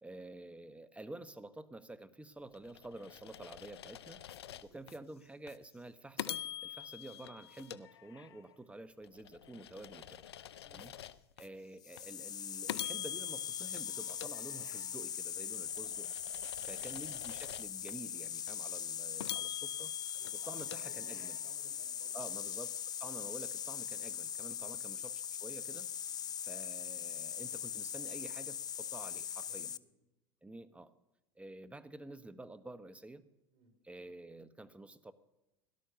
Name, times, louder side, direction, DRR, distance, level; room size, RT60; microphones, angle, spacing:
voice 1, 0.0-4.2 4.6-10.2 10.7-10.9 11.4-16.1 16.6-19.9 20.3-21.4 22.1-25.1 25.4-25.9 26.4-29.7 30.4-30.9 31.4-33.2 33.8-35.1, right 2 dB, 10° right, 14 dB, 1.1 m, -50 dB
sound 1, 2.5-5.0 5.5-5.6 6.2-8.5 9.0-11.5 12.0-12.1 12.7-15.0 15.5-18.0 18.5-18.6 19.2-21.5, left 11 dB, 90° left, 0.6 m, -46 dB
voice 2, 4.4-4.8 10.6-10.9 16.6-17.0 20.2-22.6 24.6-24.8 26.0-26.5 29.4-29.9 33.5-33.7, right 3 dB, 45° right, 5 dB, 5.0 m, -63 dB
sound 2, 11.8-29.8, left 9 dB, 30° left, 0.5 m, -41 dB
17.0 x 12.0 x 6.9 m, 0.98 s
hypercardioid pair, 90°, 13 cm